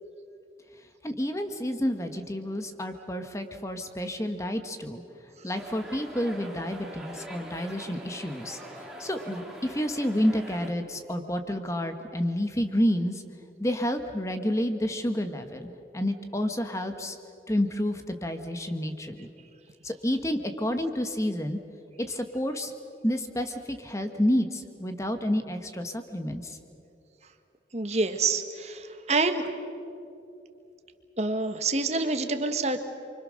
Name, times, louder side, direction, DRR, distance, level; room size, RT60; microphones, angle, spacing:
voice 1, 1.0-5.0 5.4-8.6 9.0-13.2 13.6-17.2 17.5-19.3 19.8-21.6 22.0-22.7 23.0-26.6, equal, 15° left, 7 dB, 1.4 m, -29 dB
sound 1, 5.5-10.7, right 1 dB, ahead, 2.9 m, -43 dB
voice 2, 27.7-29.4 31.2-32.8, right 3 dB, 40° right, 7 dB, 1.5 m, -27 dB
29.0 x 24.5 x 6.5 m, 2.7 s
head